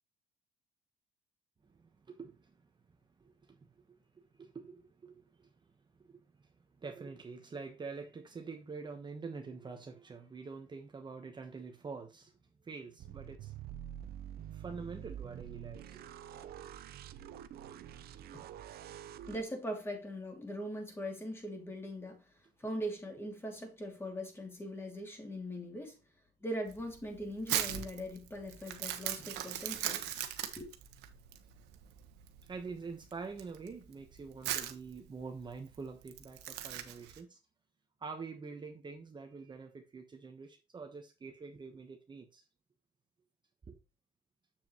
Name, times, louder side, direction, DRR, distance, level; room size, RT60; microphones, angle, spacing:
voice 1, 1.6-2.5 3.2-3.6 3.9-5.5 5.9-6.5 6.8-12.4 12.6-13.5 14.5-16.1 32.4-37.4 38.0-42.4 43.7-43.8, right 4 dB, 25° right, 1.2 m, -46 dB
sound 1, 13.0-19.4, right 10 dB, 65° right, 0.8 m, -47 dB
voice 2, 19.3-22.2 22.6-26.0 26.4-30.2 30.5-30.7, equal, 15° left, 2.8 m, -41 dB
Crumpling crinkling, 26.7-37.2, right 12 dB, 85° right, 1.1 m, -39 dB
7.6 x 7.0 x 3.1 m
cardioid pair, 110°, 17 cm